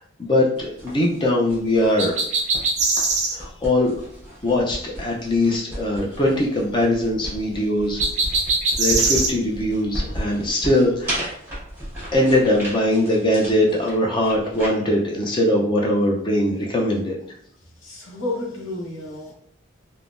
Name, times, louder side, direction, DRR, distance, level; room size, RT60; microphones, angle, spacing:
voice 1, 0.2-2.2 3.3-4.0 4.4-8.0 8.8-11.3 12.1-17.2, left 1 dB, 25° left, -1 dB, 0.5 m, -21 dB
sound 1, 0.5-14.7, equal, 10° right, 1.0 m, -35 dB
sound 2, 2.0-3.4 8.0-9.3, right 3 dB, 35° right, 0.4 m, -21 dB
voice 2, 17.8-19.3, left 2 dB, 80° left, -2 dB, 0.8 m, -31 dB
3.5 x 2.1 x 2.5 m, 0.65 s
head